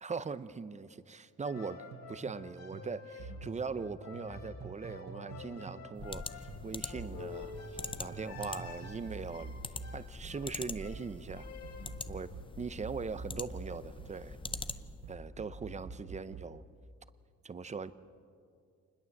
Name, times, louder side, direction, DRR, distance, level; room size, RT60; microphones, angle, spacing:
voice 1, 0.0-7.5 8.0-9.6 9.9-11.5 12.1-12.3 12.6-14.4 15.1-16.6 17.4-17.9, right 5 dB, 25° right, 14 dB, 0.7 m, -40 dB
sound 1, 1.4-12.1, left 4 dB, 60° left, 3.4 m, -49 dB
sound 2, 1.5-6.2 6.5-16.6, right 3 dB, 65° right, 3.4 m, -47 dB
sound 3, 6.0-15.1, left 4 dB, 15° left, 0.6 m, -45 dB
26.5 x 21.0 x 7.2 m, 2.3 s
cardioid pair, 130°, 30 cm